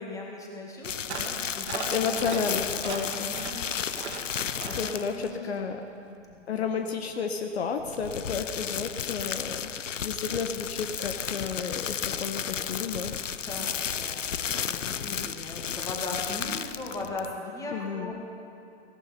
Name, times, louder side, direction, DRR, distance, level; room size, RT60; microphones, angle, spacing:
voice 1, 0.0-2.7 3.0-3.6 4.6-6.7 13.4-18.2, left 2 dB, 10° left, -2 dB, 2.0 m, -39 dB
sound 1, 0.8-5.3 7.8-17.4, left 8 dB, 80° left, 0.6 m, -33 dB
sound 2, 1.1-1.4 1.7-2.4 2.8-3.6 3.9-4.2 4.6-4.9, right 4 dB, 65° right, 1.9 m, -37 dB
voice 2, 1.9-3.1 4.7-5.8 6.5-13.1 17.7-18.1, left 6 dB, 55° left, 5 dB, 1.1 m, -32 dB
17.0 x 11.5 x 5.8 m, 2.5 s
figure-of-eight pair, 125°, 37 cm